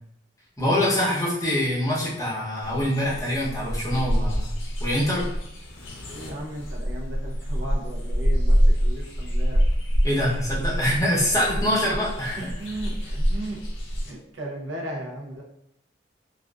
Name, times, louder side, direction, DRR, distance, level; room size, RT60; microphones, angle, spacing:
voice 1, 0.6-4.5 4.8-5.3 10.0-12.5, equal, 20° left, -6 dB, 0.6 m, -24 dB
sound 1, 2.6-14.1, equal, 90° left, 0.6 m, -26 dB
voice 2, 6.1-9.6 10.1-10.4 11.5-12.0 12.4-13.6 14.0-15.4, right 1 dB, 90° right, -1 dB, 0.6 m, -36 dB
2.4 x 2.4 x 2.2 m, 0.78 s
head